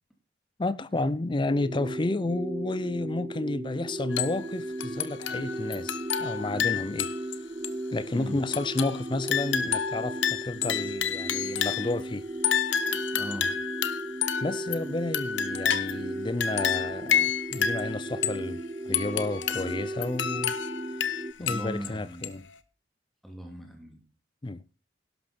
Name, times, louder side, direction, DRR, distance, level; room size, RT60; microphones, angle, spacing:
voice 1, 0.6-7.1 7.9-12.3 14.4-20.5 20.9-21.0 21.4-22.5 24.4-24.6, left 2 dB, 25° left, 0.5 m, -31 dB
sound 1, 1.5-21.3, right 1 dB, 20° right, 0.8 m, -36 dB
sound 2, 4.1-4.5 4.8-7.4 7.6-7.7 8.5-12.0 12.4-16.1 16.4-18.4 18.9-21.9 22.2-22.3, left 8 dB, 85° left, 1.1 m, -30 dB
voice 2, 8.1-8.5 13.1-13.5 21.4-22.3 23.2-24.0, equal, ahead, 2.6 m, -38 dB
12.0 x 11.5 x 4.2 m
head